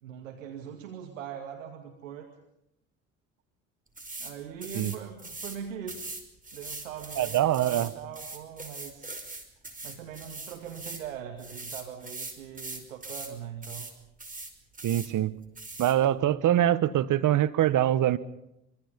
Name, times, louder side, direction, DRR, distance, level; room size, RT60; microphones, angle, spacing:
voice 1, 0.0-2.3 4.2-6.1 6.5-9.2 9.8-13.9, right 8 dB, 85° right, 3 dB, 2.2 m, -41 dB
sound 1, 4.0-4.3 4.6-5.6 5.9-11.1 11.4-13.3 13.6-13.9 14.2-15.1 15.6-15.9, right 2 dB, 20° right, 5.4 m, -41 dB
voice 2, 7.2-7.9 14.8-15.3 15.8-18.2, right 12 dB, 50° right, 13 dB, 1.5 m, -24 dB
25.5 x 25.0 x 5.5 m, 0.83 s
hypercardioid pair, 60°, 38 cm